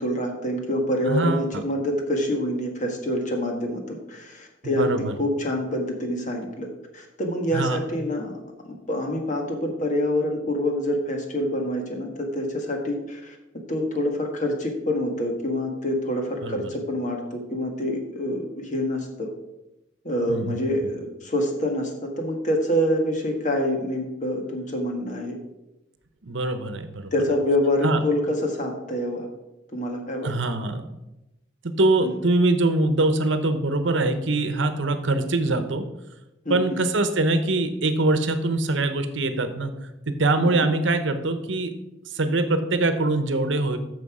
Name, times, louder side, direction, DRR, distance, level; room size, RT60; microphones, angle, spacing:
voice 1, 0.0-6.7 6.9-8.3 8.9-13.4 13.7-19.3 20.0-25.4 27.1-29.3 29.7-30.3 32.0-32.1 36.5-36.8 40.6-40.7, left 1 dB, 40° left, 2 dB, 1.7 m, -26 dB
voice 2, 1.1-1.6 4.6-5.1 7.5-7.8 16.4-16.7 20.3-20.6 26.2-27.1 27.8-28.0 30.2-30.8 31.6-35.9 36.5-39.7 40.1-41.7 42.1-43.8, right 2 dB, 70° right, 9 dB, 0.9 m, -23 dB
9.6 x 6.7 x 4.9 m, 0.94 s
head